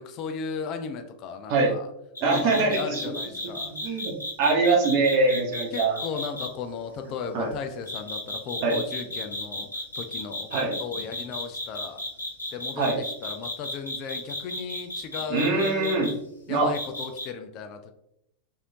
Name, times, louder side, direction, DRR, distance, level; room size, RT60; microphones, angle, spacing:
voice 1, 0.0-1.9 2.2-4.0 5.7-9.7 9.9-12.0 12.5-16.0 16.5-17.9, left 6 dB, 40° left, 6 dB, 0.3 m, -36 dB
sound 1, 2.2-6.5 7.9-16.1 16.7-17.3, left 1 dB, 75° left, 0.8 m, -33 dB
voice 2, 2.2-3.0 3.7-4.1 4.4-6.0 7.3-7.5 8.6-8.8 10.5-10.7 12.8-13.0 15.3-16.1 16.5-16.7, right 3 dB, 45° right, 0 dB, 0.9 m, -23 dB
3.1 x 2.6 x 2.9 m, 0.77 s
figure-of-eight pair, 90°, 0 cm